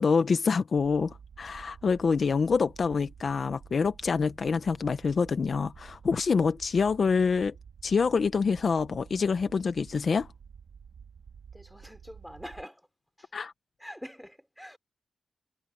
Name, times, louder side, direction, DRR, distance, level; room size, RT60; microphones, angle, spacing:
voice 1, 0.0-7.5 7.8-10.3 13.3-13.5, left 5 dB, 50° left, 0.7 m, -26 dB
sound 1, 0.7-12.7, right 6 dB, 80° right, 2.9 m, -51 dB
voice 2, 11.5-12.9 13.2-13.3 13.8-14.8, equal, ahead, 3.8 m, -45 dB
wide cardioid pair, 135°, 0 cm